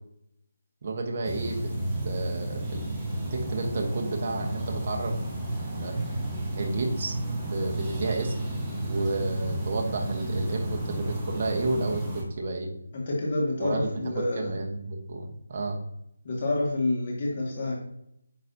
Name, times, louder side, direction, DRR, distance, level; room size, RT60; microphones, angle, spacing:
voice 1, 0.8-1.7 2.0-2.8 3.3-5.2 5.8-5.9 6.6-8.3 8.9-12.7 13.6-15.8, right 2 dB, 35° right, 2 dB, 1.1 m, -31 dB
sound 1, 1.2-12.2, right 1 dB, 10° right, 1.3 m, -32 dB
voice 2, 12.9-14.5 16.2-17.7, left 2 dB, 35° left, -2 dB, 2.2 m, -28 dB
9.1 x 4.0 x 2.8 m, 0.76 s
figure-of-eight pair, 170°, 0 cm